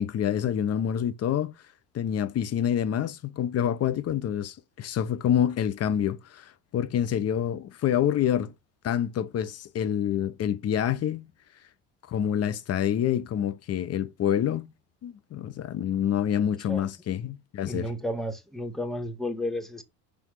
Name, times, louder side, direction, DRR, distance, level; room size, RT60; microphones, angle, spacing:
voice 1, 0.0-1.5 1.9-8.5 8.8-11.3 12.1-14.7 15.0-17.9, left 9 dB, 45° left, 0.9 m, -27 dB
voice 2, 17.7-19.8, left 1 dB, ahead, 1.5 m, -32 dB
6.1 x 3.5 x 4.7 m
supercardioid pair, 90°, 35 cm